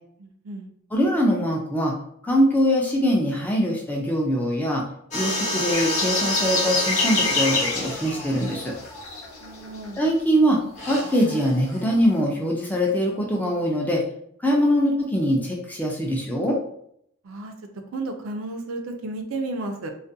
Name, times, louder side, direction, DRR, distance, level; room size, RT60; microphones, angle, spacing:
voice 1, 0.2-0.7 9.4-10.0 17.2-17.5 17.9-19.9, right 2 dB, 75° right, 5 dB, 0.4 m, -32 dB
voice 2, 0.9-1.9 2.2-4.8 5.1-8.7 10.0-10.6 10.9-14.0 14.4-16.6, equal, 10° left, -1 dB, 0.3 m, -22 dB
sound 1, 5.1-9.7 10.7-12.2, left 1 dB, 35° left, 0.7 m, -29 dB
sound 2, 5.7-10.5 10.9-11.0, left 4 dB, 85° left, 0.6 m, -28 dB
2.3 x 2.1 x 2.6 m, 0.69 s
head